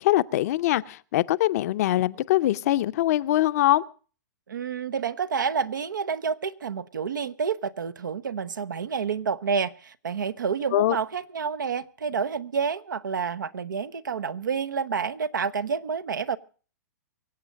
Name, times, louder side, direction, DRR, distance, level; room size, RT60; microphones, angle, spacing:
voice 1, 0.0-3.8 10.7-11.0, left 15 dB, 55° left, 0.6 m, -23 dB
voice 2, 4.5-16.4, right 6 dB, 85° right, 0.8 m, -29 dB
24.0 x 8.1 x 5.2 m
hypercardioid pair, 120°, 10 cm